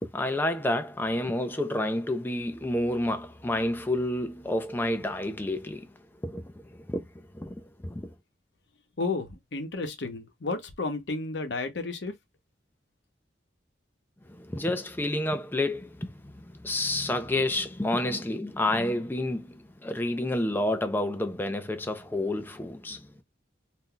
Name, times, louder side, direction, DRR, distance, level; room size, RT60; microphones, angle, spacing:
voice 1, 0.0-8.1 14.3-23.2, left 1 dB, 10° left, 0.4 m, -30 dB
voice 2, 9.0-12.1, left 3 dB, 65° left, 0.8 m, -32 dB
2.5 x 2.2 x 3.7 m
head